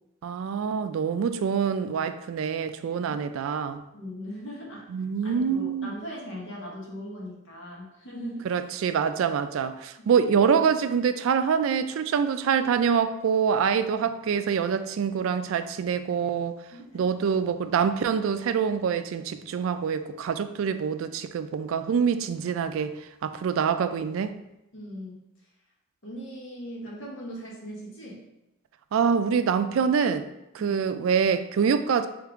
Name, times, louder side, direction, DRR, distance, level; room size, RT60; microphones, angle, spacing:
voice 1, 0.2-3.8 4.9-5.9 8.5-16.6 16.9-22.9 23.2-24.3 28.9-30.3 30.5-32.1, right 6 dB, 75° right, 10 dB, 0.3 m, -25 dB
voice 2, 3.9-4.9 5.2-8.5 16.7-17.0 24.7-25.1 26.0-28.2, equal, 65° left, -4 dB, 1.2 m, -39 dB
3.5 x 3.3 x 3.6 m, 0.90 s
head